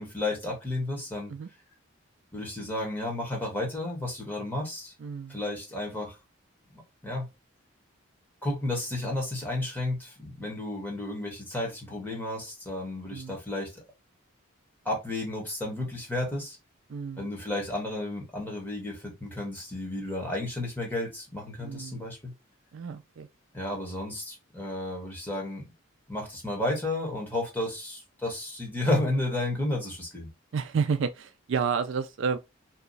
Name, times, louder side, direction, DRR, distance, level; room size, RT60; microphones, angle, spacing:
voice 1, 0.0-1.3 2.3-4.9 5.3-6.2 6.7-7.3 8.4-13.8 14.8-16.6 17.2-22.3 23.5-25.6 26.1-30.3, left 1 dB, 10° left, 1.2 m, -32 dB
voice 2, 5.0-5.4 13.1-13.4 16.9-17.3 21.6-22.1 22.7-23.3 30.5-32.4, right 6 dB, 60° right, 0.3 m, -30 dB
2.9 x 2.3 x 3.8 m
head